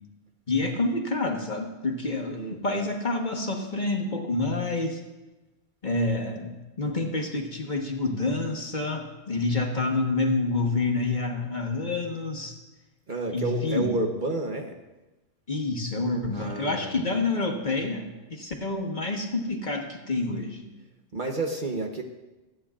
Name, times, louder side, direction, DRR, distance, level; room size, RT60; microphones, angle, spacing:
voice 1, 0.5-5.0 5.8-12.6 13.3-13.9 15.5-20.6, left 3 dB, 40° left, 2 dB, 1.4 m, -28 dB
voice 2, 13.1-14.8 16.3-17.0 21.1-22.0, right 2 dB, 45° right, 2 dB, 1.0 m, -30 dB
26.0 x 9.1 x 2.4 m, 1.1 s
omnidirectional pair, 1.3 m